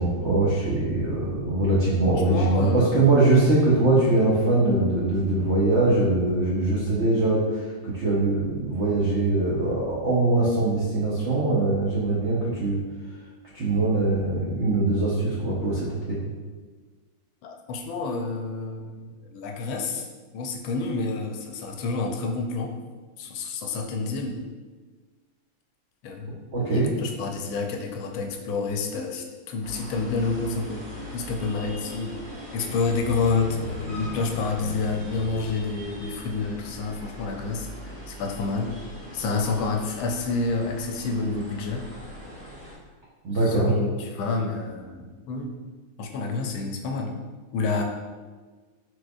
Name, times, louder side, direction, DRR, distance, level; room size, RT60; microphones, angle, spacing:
voice 1, 0.0-12.8 13.5-16.2 26.5-26.9 43.2-43.7, right 2 dB, 75° right, -6 dB, 0.6 m, -22 dB
voice 2, 2.1-3.1 17.4-20.1 20.3-22.7 23.2-24.4 26.0-30.9 31.1-37.7 38.1-38.7 39.1-41.9 43.5-45.6 46.0-47.2 47.5-47.8, left 4 dB, 80° left, 3 dB, 1.3 m, -29 dB
sound 1, 29.6-42.8, left 1 dB, 45° right, 0.9 m, -40 dB
4.8 x 4.0 x 2.3 m, 1.4 s
omnidirectional pair, 2.3 m